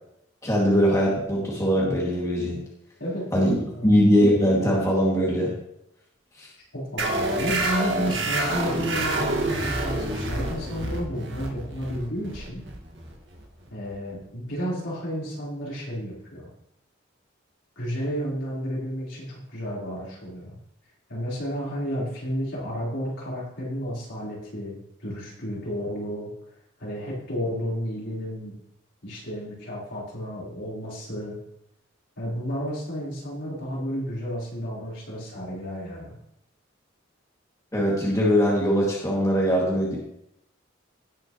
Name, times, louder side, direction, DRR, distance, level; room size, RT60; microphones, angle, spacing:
voice 1, 0.4-2.6 3.3-3.6 3.8-5.5 6.4-6.5 37.7-40.0, equal, 15° left, -5 dB, 2.3 m, -21 dB
voice 2, 6.7-12.6 13.7-16.5 17.8-20.5 21.1-26.3 26.8-28.5 29.0-31.4 32.2-36.1, equal, 70° left, -7 dB, 4.2 m, -32 dB
sound 1, 7.0-14.1, right 1 dB, 65° right, 1.9 m, -28 dB
17.5 x 6.3 x 3.1 m, 0.79 s
head